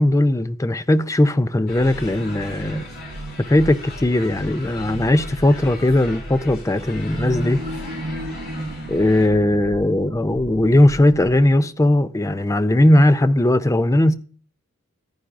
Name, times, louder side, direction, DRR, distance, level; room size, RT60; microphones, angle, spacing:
voice 1, 0.0-2.9 3.5-7.6 8.9-14.1, left 1 dB, 15° left, 0.4 m, -18 dB
sound 1, 1.7-9.3, left 3 dB, 45° left, 3.0 m, -40 dB
sound 2, 1.7-11.5, right 1 dB, 70° right, 1.2 m, -34 dB
14.5 x 10.5 x 2.5 m
head